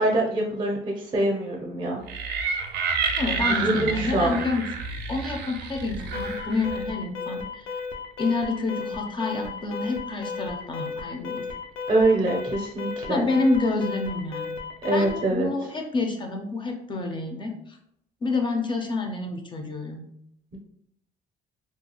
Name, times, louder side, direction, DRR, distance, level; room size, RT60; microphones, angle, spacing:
voice 1, 0.0-2.0 3.5-4.4 11.9-13.3 14.8-15.5, right 2 dB, 30° right, -1 dB, 0.5 m, -24 dB
sound 1, 2.1-6.9, right 5 dB, 85° right, 0.4 m, -29 dB
voice 2, 3.2-4.7 5.1-7.7 8.2-11.5 13.1-14.5 14.9-17.8 18.2-20.0, left 3 dB, 30° left, 3 dB, 0.4 m, -28 dB
Alarm, 6.1-15.3, left 5 dB, 90° left, 0.4 m, -34 dB
2.3 x 2.3 x 2.8 m, 0.73 s
cardioid pair, 110°, 17 cm